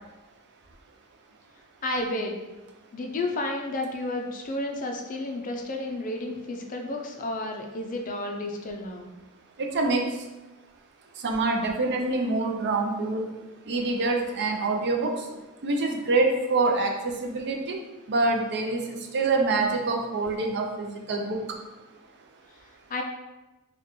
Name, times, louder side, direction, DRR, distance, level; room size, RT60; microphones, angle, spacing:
voice 1, 1.8-2.4 2.9-9.1 22.9-23.0, left 2 dB, 35° left, 3 dB, 0.4 m, -31 dB
voice 2, 9.6-10.1 11.2-13.2 13.7-15.2 15.6-17.8 18.1-21.4, right 3 dB, 50° right, 2 dB, 0.5 m, -26 dB
4.4 x 2.3 x 3.0 m, 1.1 s
head